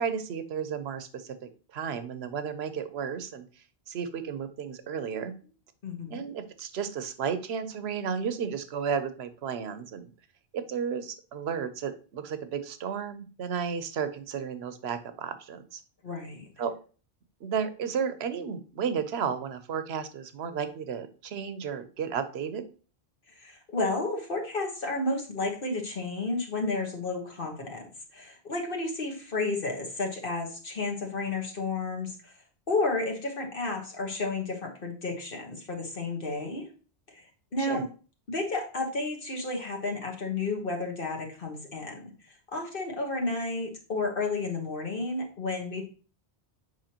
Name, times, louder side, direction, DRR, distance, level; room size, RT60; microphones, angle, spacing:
voice 1, 0.0-1.3 1.7-3.5 3.9-5.3 6.1-10.1 10.5-15.8 16.6-16.7 17.4-22.6 37.6-37.8, right 7 dB, 70° right, 11 dB, 1.0 m, -33 dB
voice 2, 5.8-6.2 16.0-16.5 23.3-27.8 28.1-32.3 32.7-36.7 37.1-37.3 37.5-37.9 38.3-45.8, left 3 dB, 55° left, 1 dB, 1.5 m, -32 dB
7.7 x 4.7 x 2.9 m, 0.36 s
omnidirectional pair, 1.1 m